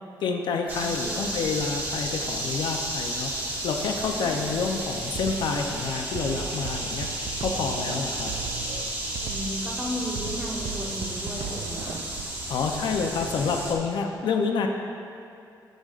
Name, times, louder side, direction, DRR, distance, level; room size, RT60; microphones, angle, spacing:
voice 1, 0.2-3.3 3.6-7.1 7.4-8.3 12.5-14.7, left 5 dB, 70° left, 3 dB, 0.6 m, -28 dB
sound 1, 0.7-13.7, right 1 dB, 25° right, 1.3 m, -33 dB
voice 2, 0.8-1.4 4.2-4.8 9.2-12.0, left 1 dB, 10° right, -3 dB, 1.1 m, -35 dB
Drum kit, 5.1-12.3, right 8 dB, 70° right, 0.4 m, -38 dB
13.5 x 5.2 x 2.5 m, 2.6 s
cardioid pair, 125°, 8 cm